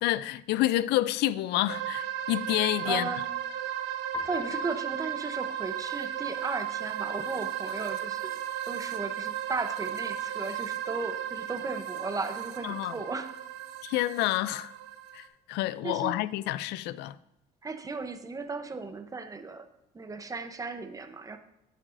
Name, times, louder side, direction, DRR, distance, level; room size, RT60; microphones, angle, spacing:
voice 1, 0.0-3.1 12.6-13.0 13.8-14.7 15.1-17.2, left 15 dB, 85° left, 0.4 m, -28 dB
sound 1, 1.7-15.3, right 11 dB, 85° right, 0.9 m, -35 dB
voice 2, 2.8-3.3 4.2-13.3 15.8-16.2 17.6-19.7 19.9-21.4, right 3 dB, 20° right, 0.8 m, -36 dB
Piano, 4.1-6.2, left 4 dB, 20° left, 1.0 m, -42 dB
11.0 x 8.6 x 2.6 m
cardioid pair, 110°, 17 cm